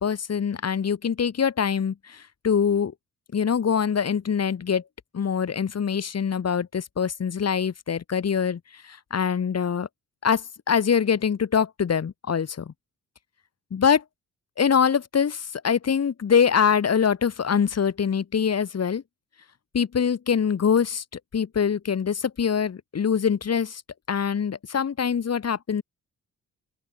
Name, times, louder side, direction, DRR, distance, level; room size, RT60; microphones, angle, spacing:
voice 1, 0.0-2.9 3.3-4.8 5.1-9.9 10.2-12.7 13.7-14.0 14.6-19.0 19.7-21.0 21.3-23.8 24.1-25.8, left 7 dB, 45° left, 1.6 m, -24 dB
open air
supercardioid pair, 60°, 36 cm